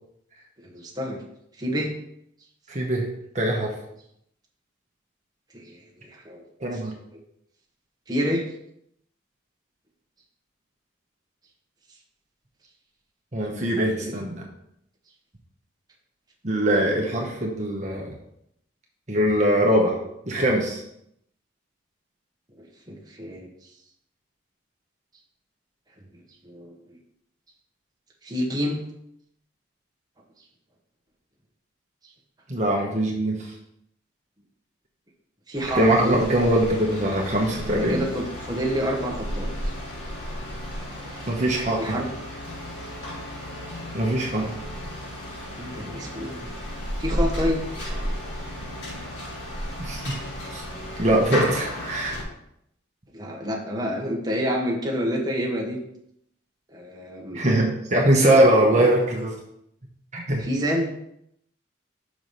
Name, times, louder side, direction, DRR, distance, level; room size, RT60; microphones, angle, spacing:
voice 1, 0.6-1.2 1.6-1.9 5.5-6.4 6.7-6.8 7.1-7.2 8.1-8.4 13.5-14.2 22.6-23.5 26.1-27.0 28.2-28.8 35.5-36.2 37.7-39.7 41.8-42.1 45.6-46.5 47.0-47.6 53.1-55.8 56.7-57.4 60.4-60.9, equal, 20° right, -1 dB, 1.1 m, -29 dB
voice 2, 2.7-3.1 3.3-3.7 6.6-6.9 13.3-14.4 16.4-18.1 19.1-19.9 20.3-20.8 32.5-33.5 35.7-38.0 41.3-42.0 43.9-44.5 49.8-50.1 50.5-50.6 51.0-52.2 57.3-59.3 60.1-60.4, right 1 dB, 35° right, -1 dB, 1.0 m, -22 dB
sound 1, 35.5-52.2, equal, 60° left, 3.1 m, -33 dB
6.2 x 4.8 x 5.4 m, 0.76 s
head